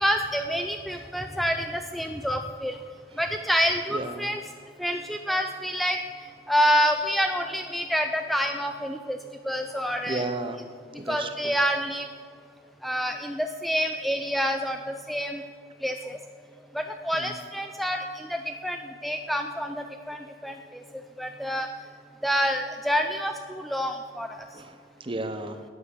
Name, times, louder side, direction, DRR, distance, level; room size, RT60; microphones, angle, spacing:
voice 1, 0.0-2.8 3.2-4.4 4.8-6.0 6.5-9.2 9.4-10.2 11.1-12.1 12.8-15.4 15.8-16.2 16.7-18.8 19.0-20.5 21.2-21.7 22.2-24.4, equal, ahead, 5 dB, 0.4 m, -27 dB
voice 2, 3.9-4.3 10.1-10.6 11.0-11.5 17.2-17.3 24.5-25.6, right 2 dB, 30° right, 9 dB, 0.8 m, -33 dB
11.5 x 9.5 x 7.0 m, 2.1 s
head